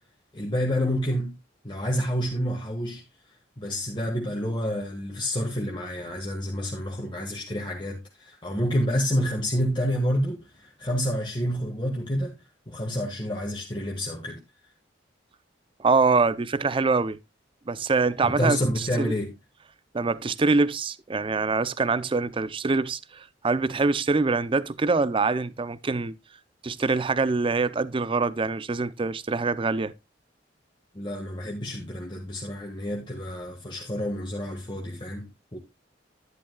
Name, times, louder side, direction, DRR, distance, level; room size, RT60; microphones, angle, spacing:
voice 1, 0.3-1.3 1.6-3.0 3.6-12.3 12.7-14.4 18.3-19.3 30.9-35.6, equal, 25° left, 1.6 m, -28 dB
voice 2, 15.8-17.2 17.7-19.1 19.9-26.1 26.6-29.9, right 4 dB, 30° right, 0.5 m, -24 dB
11.5 x 10.5 x 2.2 m
head